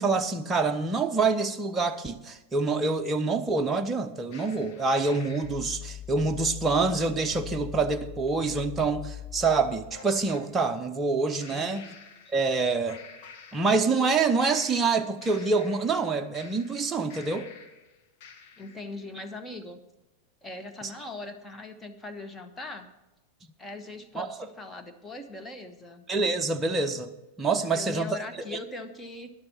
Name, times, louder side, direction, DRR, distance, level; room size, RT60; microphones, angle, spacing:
voice 1, 0.0-11.8 12.3-13.0 13.5-17.5 20.8-20.9 24.2-24.3 26.1-27.1 27.4-28.2 28.5-28.6, right 4 dB, 15° right, 0.8 m, -26 dB
sound 1, 4.3-10.4 11.4-12.6 12.9-14.1 14.4-17.8 18.2-18.8, left 8 dB, 45° left, 1.6 m, -44 dB
voice 2, 11.5-12.0 12.2-12.3 18.6-19.8 20.4-22.9 23.6-26.0 27.6-29.3, left 2 dB, 10° left, 1.2 m, -40 dB
12.5 x 11.0 x 4.3 m
figure-of-eight pair, 90°, 0 cm